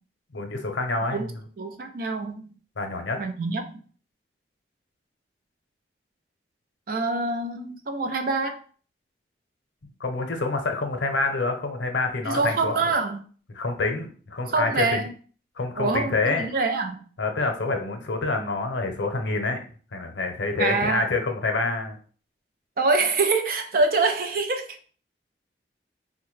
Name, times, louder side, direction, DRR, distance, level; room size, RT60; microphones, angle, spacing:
voice 1, 0.3-1.4 2.8-3.2 10.0-12.8 13.5-15.1 15.6-16.5 17.2-22.0, left 3 dB, 85° left, 0.6 m, -27 dB
voice 2, 1.6-2.6 3.2-3.8 6.9-8.6 12.2-13.2 14.4-15.1 15.8-17.1 20.6-21.0 22.8-24.8, right 3 dB, 50° right, 0.4 m, -25 dB
3.6 x 2.1 x 3.1 m
head